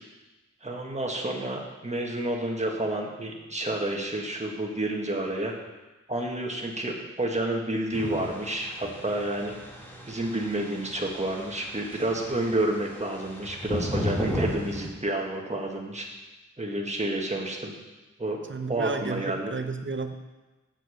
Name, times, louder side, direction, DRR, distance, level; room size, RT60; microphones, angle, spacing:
voice 1, 0.6-5.5 6.1-9.6 10.1-16.2 16.6-17.7 18.2-18.4 18.7-19.5, right 1 dB, 25° right, 0 dB, 1.6 m, -30 dB
sound 1, 7.9-14.9, equal, 5° left, 2.0 m, -35 dB
voice 2, 18.5-20.2, right 4 dB, 40° right, 7 dB, 0.8 m, -32 dB
7.8 x 7.7 x 6.4 m, 1.1 s
wide cardioid pair, 95°, 30 cm